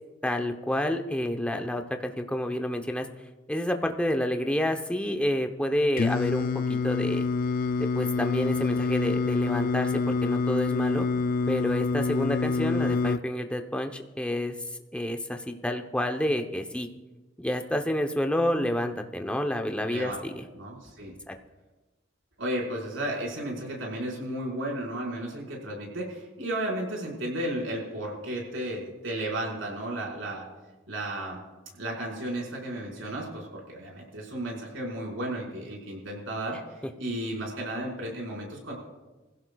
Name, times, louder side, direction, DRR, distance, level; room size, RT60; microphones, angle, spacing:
voice 1, 0.2-3.1 3.5-7.3 7.8-11.1 11.5-14.6 14.9-16.9 17.4-20.4 21.3-21.4, left 1 dB, 5° left, 5 dB, 0.8 m, -29 dB
Singing, 6.0-13.2, left 4 dB, 50° left, 0.3 m, -26 dB
voice 2, 19.8-20.2 20.5-21.1 22.4-30.5 30.9-31.4 31.8-38.7, right 1 dB, 85° right, -2 dB, 4.9 m, -34 dB
24.0 x 16.0 x 2.3 m, 1.2 s
head